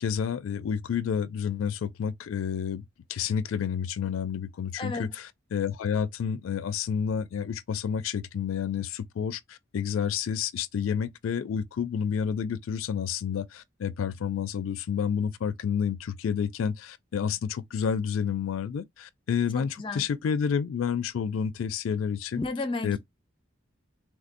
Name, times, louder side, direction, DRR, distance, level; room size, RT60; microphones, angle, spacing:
voice 1, 0.0-22.4 22.8-23.0, left 7 dB, 90° left, 0.4 m, -30 dB
voice 2, 4.8-5.1 19.5-20.0 22.4-23.0, left 3 dB, 25° left, 0.5 m, -32 dB
3.6 x 2.5 x 2.5 m
head